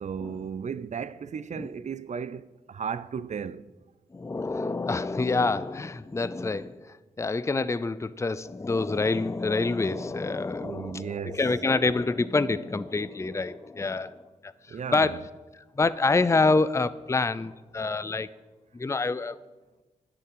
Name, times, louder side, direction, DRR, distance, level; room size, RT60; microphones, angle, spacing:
voice 1, 0.0-3.7 10.6-11.4 14.7-15.2, right 7 dB, 55° right, 0.5 m, -35 dB
voice 2, 4.1-15.2 15.6-18.3 18.7-19.4, left 3 dB, 20° left, 0.5 m, -27 dB
11.0 x 6.9 x 7.5 m
cardioid pair, 55°, 14 cm